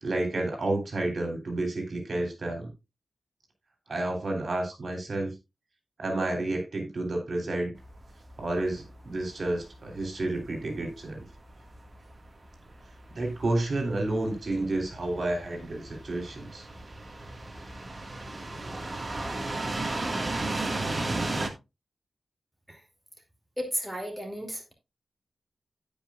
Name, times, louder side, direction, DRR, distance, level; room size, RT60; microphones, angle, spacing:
voice 1, 0.0-2.7 3.9-5.4 6.0-7.8 8.4-11.2 13.1-16.6, right 2 dB, 60° right, 3.2 m, -30 dB
sound 1, 7.8-21.5, right 2 dB, 40° right, 1.8 m, -35 dB
voice 2, 23.6-24.7, equal, 10° right, 2.6 m, -34 dB
16.0 x 5.4 x 2.4 m
cardioid pair, 65°, 0 cm